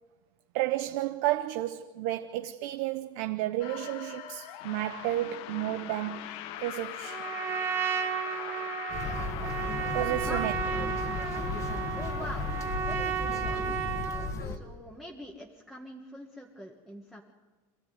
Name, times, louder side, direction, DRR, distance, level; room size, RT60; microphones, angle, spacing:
voice 1, 0.5-7.2 9.9-10.5, right 15 dB, 60° right, 0.9 m, -32 dB
sound 1, 3.6-12.8, left 12 dB, 55° left, 1.3 m, -42 dB
Trumpet, 7.0-14.4, right 7 dB, 20° right, 3.5 m, -33 dB
sound 2, 8.9-14.6, left 3 dB, 25° left, 1.7 m, -35 dB
voice 2, 9.9-10.6 11.9-12.5 12.8-13.7 14.4-17.2, equal, ahead, 1.6 m, -43 dB
26.5 x 15.5 x 9.4 m
cardioid pair, 170°, 12 cm